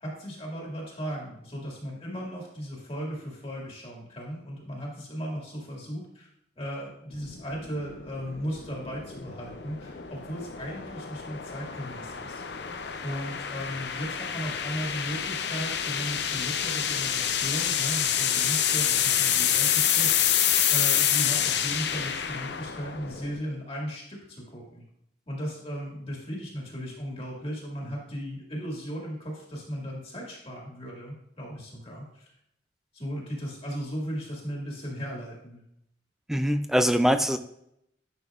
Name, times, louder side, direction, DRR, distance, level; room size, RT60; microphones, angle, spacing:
voice 1, 0.0-6.3 6.6-12.4 13.0-20.3 20.7-24.8 25.3-32.3 32.9-35.6, equal, 30° left, -2 dB, 1.9 m, -36 dB
sound 1, 7.1-23.4, left 9 dB, 65° left, 0.6 m, -28 dB
voice 2, 36.3-37.4, equal, ahead, 9 dB, 0.3 m, -23 dB
10.5 x 6.0 x 2.4 m, 0.78 s
head